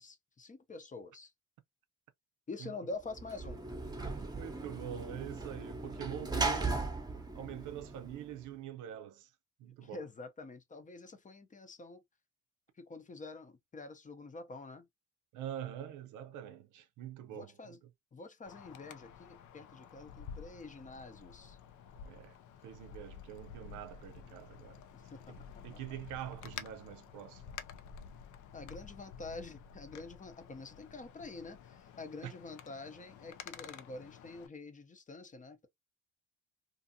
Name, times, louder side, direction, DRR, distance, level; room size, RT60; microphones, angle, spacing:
voice 1, 0.0-1.3 2.5-3.6 9.6-12.0 12.7-14.9 17.3-17.8 18.1-21.6 24.9-25.3 25.9-26.0 28.5-35.7, left 3 dB, 25° left, 0.6 m, -47 dB
Sliding door / Slam, 3.1-8.5, right 3 dB, 15° right, 0.7 m, -38 dB
voice 2, 4.1-6.8 7.3-9.3 9.6-10.0 15.3-17.7 22.0-22.4 22.6-24.8 25.3-27.4 32.2-32.3, right 11 dB, 85° right, 0.6 m, -45 dB
Wind, 18.5-34.5, left 7 dB, 80° left, 0.5 m, -51 dB
2.6 x 2.5 x 2.6 m
cardioid pair, 90°, 30 cm